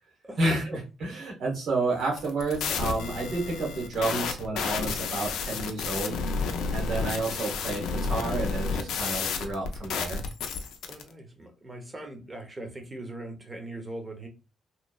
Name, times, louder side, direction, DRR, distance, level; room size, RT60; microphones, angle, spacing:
voice 1, 0.4-10.2, right 2 dB, 65° right, 0 dB, 1.2 m, -30 dB
sound 1, 2.1-11.0, left 5 dB, 80° left, 0.4 m, -31 dB
voice 2, 10.9-14.3, right 1 dB, 25° right, 4 dB, 0.8 m, -40 dB
3.0 x 2.0 x 2.3 m, 0.32 s
cardioid pair, 90°, 0 cm